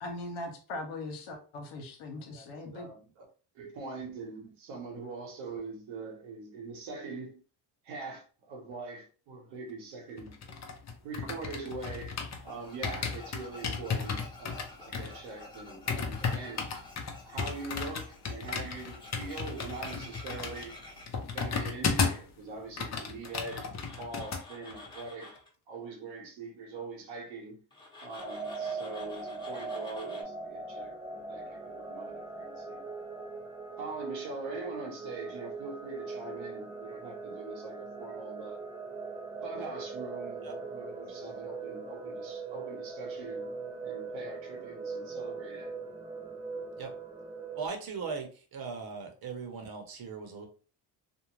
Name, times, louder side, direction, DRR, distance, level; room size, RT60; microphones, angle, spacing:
voice 1, 0.0-2.9, left 2 dB, 90° left, 0.9 m, -40 dB
voice 2, 2.7-3.2 3.5-7.4 7.8-10.4 11.0-16.7 17.2-20.8 21.3-23.7 24.0-25.4 25.7-27.6 28.0-32.9 33.8-38.6 39.4-43.5 43.8-45.7, right 3 dB, 80° right, 1.1 m, -43 dB
sound 1, 10.2-12.5 12.8-22.3 22.6-24.4 24.7-25.0, left 5 dB, 35° left, 0.7 m, -34 dB
Tools, 12.5-21.1 23.2-25.5 27.7-30.2, left 2 dB, 10° left, 1.1 m, -50 dB
sound 2, 28.2-47.7, right 4 dB, 10° right, 0.4 m, -40 dB
voice 3, 47.6-50.5, right 5 dB, 50° right, 1.0 m, -39 dB
2.6 x 2.1 x 3.1 m
supercardioid pair, 80°, 46 cm